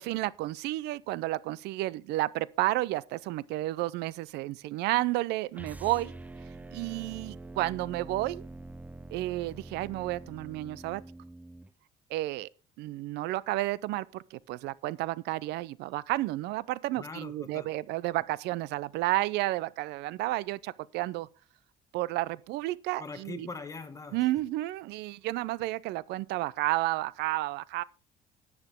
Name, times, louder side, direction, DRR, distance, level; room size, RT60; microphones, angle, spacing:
voice 1, 0.0-6.1 6.7-8.4 9.1-11.0 12.1-12.5 12.8-21.3 21.9-23.5 24.1-27.8, right 17 dB, 85° right, 0.5 m, -31 dB
sound 1, 5.5-11.7, right 2 dB, 10° right, 0.5 m, -45 dB
voice 2, 17.0-17.7 23.0-24.2, left 3 dB, 20° left, 1.7 m, -42 dB
10.5 x 9.6 x 3.5 m
cardioid pair, 110°, 17 cm